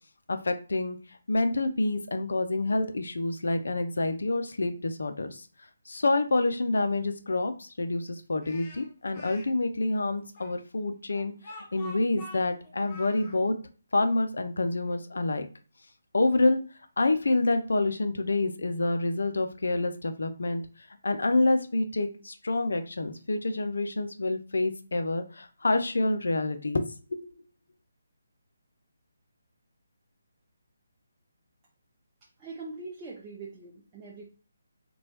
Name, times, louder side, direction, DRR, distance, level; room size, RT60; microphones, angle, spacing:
voice 1, 0.3-1.0 1.3-5.5 5.9-11.3 11.7-13.5 13.9-15.5 16.1-16.6 17.0-20.6 21.0-27.2, left 2 dB, 65° left, 8 dB, 0.4 m, -27 dB
Speech, 8.4-9.5 10.4-13.4, left 1 dB, 25° left, 0.8 m, -46 dB
voice 2, 32.4-34.3, right 3 dB, 20° right, -5 dB, 0.5 m, -42 dB
2.9 x 2.2 x 2.9 m, 0.37 s
figure-of-eight pair, 145°, 0 cm